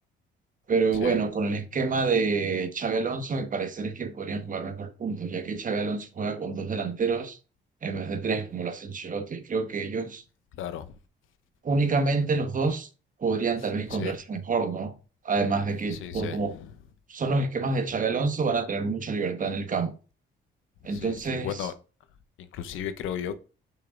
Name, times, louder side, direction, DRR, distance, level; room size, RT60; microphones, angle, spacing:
voice 1, 0.7-7.4 7.8-10.2 11.6-12.9 13.2-14.9 15.2-16.5 17.1-19.9 20.8-21.5, right 4 dB, 40° right, 1.4 m, -28 dB
voice 2, 10.5-11.0 13.9-14.2 15.9-16.8 20.8-21.7 22.4-23.4, left 9 dB, 85° left, 0.9 m, -35 dB
6.9 x 5.6 x 3.8 m
cardioid pair, 90°, 20 cm